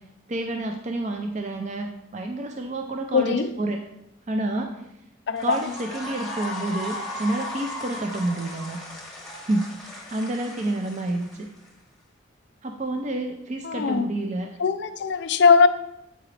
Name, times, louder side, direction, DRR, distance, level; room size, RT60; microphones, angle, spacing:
voice 1, 0.3-3.8 4.3-4.8 5.4-8.8 9.5-11.5 12.6-14.5, right 2 dB, 35° right, 3 dB, 0.4 m, -29 dB
voice 2, 3.1-3.5 5.3-5.6 13.6-14.1 14.6-15.7, left 5 dB, 60° left, 10 dB, 0.4 m, -20 dB
sound 1, 5.4-11.7, left 1 dB, ahead, 1.0 m, -36 dB
7.8 x 4.8 x 3.2 m, 0.85 s
head